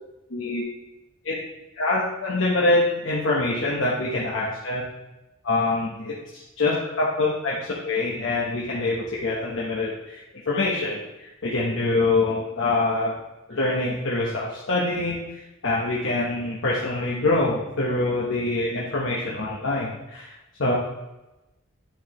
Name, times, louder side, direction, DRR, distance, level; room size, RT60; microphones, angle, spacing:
voice 1, 0.3-0.6 1.2-1.3 1.8-4.8 5.4-13.2 13.5-20.3 20.6-20.7, left 2 dB, 65° left, -5 dB, 1.0 m, -25 dB
9.2 x 4.6 x 3.1 m, 0.99 s
head